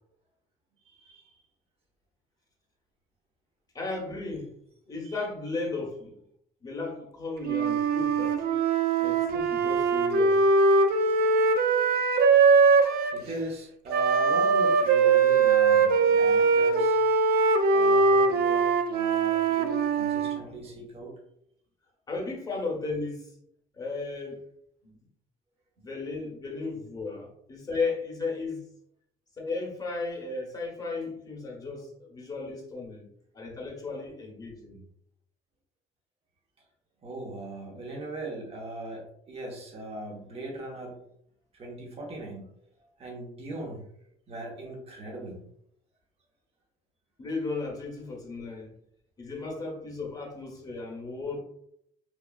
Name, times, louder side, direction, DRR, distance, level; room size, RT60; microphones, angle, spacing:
voice 1, 0.8-1.4 5.0-5.2 13.1-17.0 17.7-21.1 37.0-41.0 41.5-42.5 43.0-43.9 44.3-45.4, right 1 dB, 35° right, -1 dB, 0.9 m, -39 dB
voice 2, 3.7-4.6 4.9-6.1 6.6-8.4 9.0-10.4 15.6-15.9 20.2-20.8 22.1-23.4 23.7-24.5 24.8-25.0 25.8-28.6 29.3-33.1 33.3-34.8 47.2-48.7 49.2-51.4, left 3 dB, 20° left, -2 dB, 1.0 m, -35 dB
Wind instrument woodwind instrument, 7.4-13.2 13.9-20.4, right 4 dB, 65° right, 0.4 m, -22 dB
3.1 x 2.3 x 2.3 m, 0.71 s
cardioid pair, 110°, 17 cm